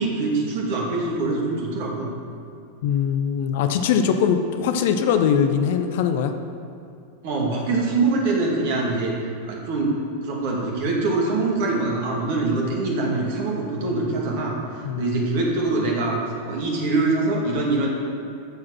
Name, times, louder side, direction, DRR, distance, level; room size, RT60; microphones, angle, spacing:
voice 1, 0.0-2.1 7.2-9.2 9.5-10.0 10.2-16.2 16.4-17.9, right 3 dB, 50° right, -2 dB, 2.2 m, -24 dB
voice 2, 2.8-6.3 14.8-15.1, left 7 dB, 50° left, 7 dB, 0.7 m, -21 dB
13.5 x 4.9 x 6.1 m, 2.5 s
figure-of-eight pair, 90°, 0 cm